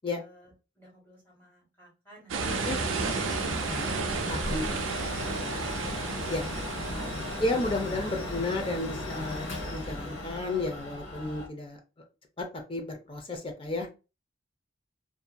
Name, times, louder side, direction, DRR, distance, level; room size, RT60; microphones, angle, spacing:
voice 1, 0.1-3.3 3.5-3.8 6.9-7.1, right 1 dB, 10° left, -3 dB, 1.3 m, -55 dB
sound 1, 2.3-8.2, right 4 dB, 85° right, 0.4 m, -33 dB
Mechanical fan, 2.4-11.5, left 1 dB, 90° left, 0.8 m, -36 dB
voice 2, 4.3-4.8 6.3-6.4 7.4-11.8 12.4-13.9, left 2 dB, 25° left, 3 dB, 0.5 m, -32 dB
2.7 x 2.6 x 2.2 m, 0.31 s
head